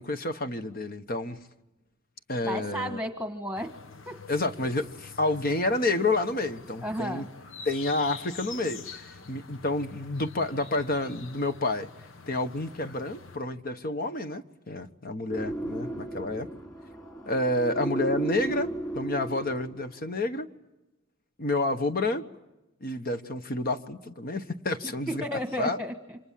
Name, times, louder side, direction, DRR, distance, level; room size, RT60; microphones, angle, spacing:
voice 1, 0.0-1.4 2.3-3.0 4.3-7.2 7.6-11.9 12.3-16.5 17.3-18.7 18.9-20.5 21.4-22.2 22.8-25.2 25.6-25.8, left 2 dB, 50° left, 8 dB, 1.3 m, -29 dB
voice 2, 2.4-3.7 4.1-4.2 6.8-7.3 25.1-26.2, equal, 5° right, 4 dB, 1.5 m, -33 dB
sound 1, 3.5-13.4, left 5 dB, 75° left, 1.2 m, -46 dB
sound 2, 15.3-19.9, right 1 dB, 20° left, 5.0 m, -35 dB
29.5 x 26.5 x 7.6 m, 0.97 s
head